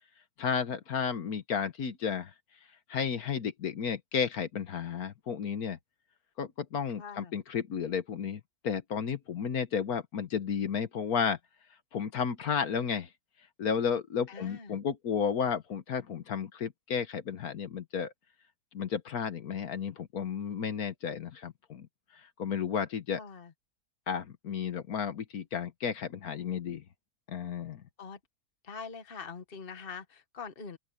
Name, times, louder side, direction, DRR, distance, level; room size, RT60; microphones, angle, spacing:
voice 1, 0.4-2.3 2.9-5.8 6.4-11.4 11.9-13.1 13.6-18.1 18.7-21.9 22.2-23.2 24.1-26.8 27.3-27.8, left 7 dB, 75° left, 1.6 m, -32 dB
voice 2, 7.0-7.4 14.3-14.8 23.2-23.5 28.0-28.2 28.6-30.8, left 5 dB, 40° left, 1.5 m, -43 dB
open air
omnidirectional pair, 1.6 m